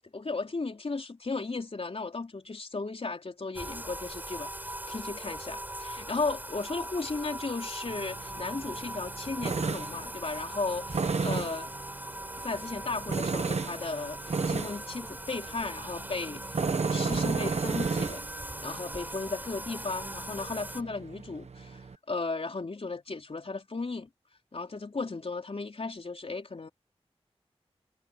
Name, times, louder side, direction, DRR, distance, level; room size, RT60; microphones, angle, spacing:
voice 1, 0.1-11.7 12.4-16.6 16.9-18.2 18.6-24.1 24.5-26.7, left 3 dB, 65° left, 3.9 m, -35 dB
Bathtub (filling or washing), 3.5-20.8, right 1 dB, 15° right, 4.8 m, -40 dB
Tools, 7.9-22.0, right 4 dB, 80° right, 1.1 m, -34 dB
wide cardioid pair, 50°, 11 cm